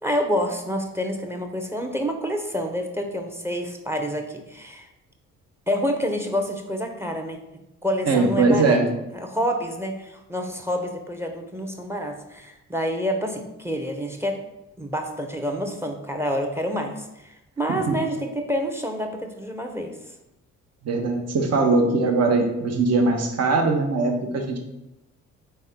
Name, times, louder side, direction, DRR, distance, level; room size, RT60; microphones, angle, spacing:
voice 1, 0.0-4.9 5.7-7.4 7.8-8.8 9.1-14.4 14.8-19.9, equal, 5° right, 4 dB, 0.8 m, -28 dB
voice 2, 8.1-8.9 17.7-18.0 20.8-24.6, right 3 dB, 45° right, 3 dB, 1.0 m, -21 dB
4.2 x 3.3 x 3.7 m, 0.90 s
hypercardioid pair, 50°, 37 cm